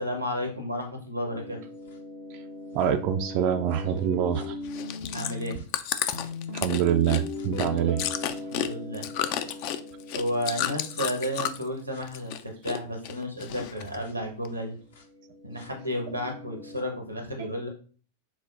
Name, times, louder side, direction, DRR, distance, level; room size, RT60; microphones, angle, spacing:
voice 1, 0.0-1.6 5.1-5.6 8.5-9.1 9.4-9.6 10.1-14.8 15.4-17.7, equal, 90° right, 2 dB, 1.0 m, -32 dB
sound 1, 1.3-5.6 6.1-12.1 13.1-13.2 13.5-16.8, left 2 dB, 65° left, 0.7 m, -40 dB
voice 2, 2.7-4.6 6.5-8.0, right 9 dB, 45° right, 6 dB, 0.3 m, -25 dB
Chewing mastication, 4.7-11.7 12.0-12.8 13.0-14.0 14.4-14.5, left 11 dB, 45° left, 0.3 m, -32 dB
6.0 x 2.0 x 2.4 m, 0.40 s
figure-of-eight pair, 90°, 0 cm